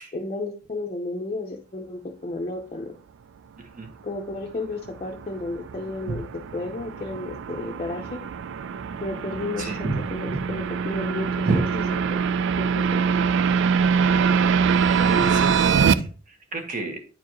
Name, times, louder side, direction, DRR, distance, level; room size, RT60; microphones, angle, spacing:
voice 1, 0.1-2.9 4.0-6.2 6.5-8.2 9.0-11.8 12.1-12.2 12.6-13.3, left 2 dB, 30° left, 1 dB, 0.7 m, -32 dB
voice 2, 3.6-3.9 6.1-6.2 9.6-10.4 11.4-11.7 15.0-17.0, right 2 dB, 45° right, 3 dB, 1.5 m, -29 dB
sound 1, 4.5-15.9, right 6 dB, 65° right, 0.4 m, -24 dB
9.2 x 4.6 x 3.0 m, 0.36 s
head